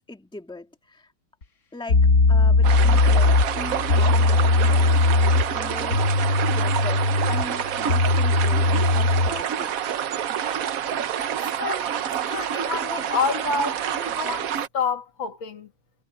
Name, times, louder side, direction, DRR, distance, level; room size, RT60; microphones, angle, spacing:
voice 1, 0.1-1.1 1.7-5.0 5.5-6.1 6.5-9.7, left 2 dB, ahead, 1.9 m, -39 dB
sound 1, 1.4-1.5 1.9-9.4, left 3 dB, 40° left, 1.7 m, -20 dB
sound 2, 2.6-14.7, right 9 dB, 60° right, 1.0 m, -28 dB
voice 2, 11.4-12.0 12.3-15.7, left 5 dB, 70° left, 2.6 m, -29 dB
omnidirectional pair, 2.2 m